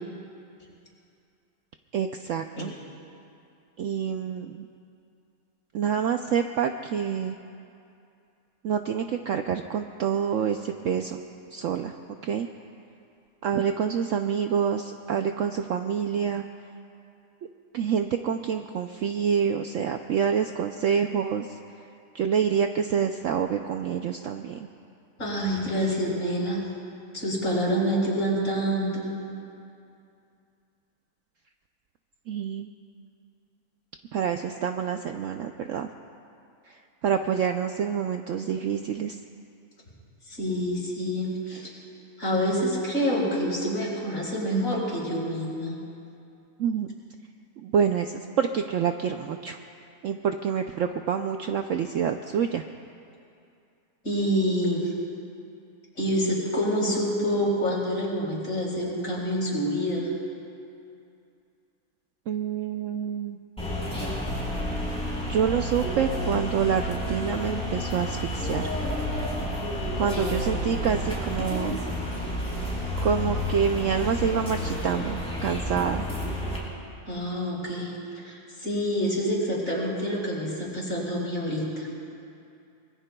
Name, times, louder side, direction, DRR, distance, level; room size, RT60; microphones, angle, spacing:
voice 1, 1.9-2.7 3.8-4.7 5.7-7.4 8.6-11.2 11.5-11.9 12.2-12.5 13.4-16.5 17.7-21.6 22.1-24.7 32.3-32.7 34.1-35.9 36.7-39.2 46.6-46.9 47.6-49.6 50.0-52.6 62.3-63.4 65.2-68.7 70.0-71.8 73.0-76.1, right 7 dB, 70° right, 6 dB, 0.8 m, -27 dB
voice 2, 25.2-26.6 27.1-29.1 40.3-41.7 42.2-45.8 54.0-54.9 56.0-60.1 77.1-78.0 78.2-81.9, equal, 50° left, -4 dB, 4.5 m, -27 dB
sound 1, 63.6-76.6, left 1 dB, 5° left, 4.6 m, -30 dB
25.0 x 21.5 x 2.3 m, 2.6 s
omnidirectional pair, 1.7 m